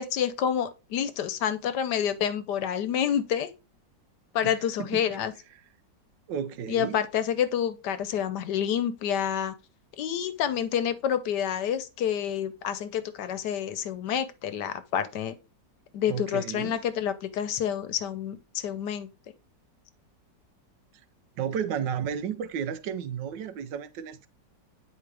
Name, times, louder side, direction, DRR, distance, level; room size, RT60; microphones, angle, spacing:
voice 1, 0.0-3.5 4.3-5.3 6.7-9.5 10.0-15.3 15.9-19.1, left 9 dB, 75° left, 1.3 m, -28 dB
voice 2, 4.4-5.2 6.3-7.0 16.1-16.8 21.4-24.3, right 8 dB, 85° right, 1.4 m, -33 dB
8.3 x 4.8 x 3.3 m
omnidirectional pair, 1.9 m